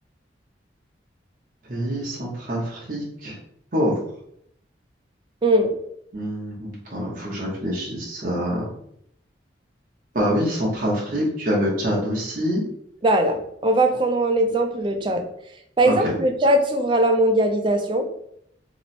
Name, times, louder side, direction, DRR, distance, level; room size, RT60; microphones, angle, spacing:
voice 1, 1.7-3.4 3.7-4.0 6.1-8.6 10.1-12.6 15.8-15.9, equal, 50° right, -5 dB, 0.7 m, -25 dB
voice 2, 5.4-5.7 13.0-15.2 15.8-18.1, right 1 dB, 25° right, 5 dB, 0.4 m, -20 dB
2.9 x 2.0 x 4.1 m, 0.72 s
head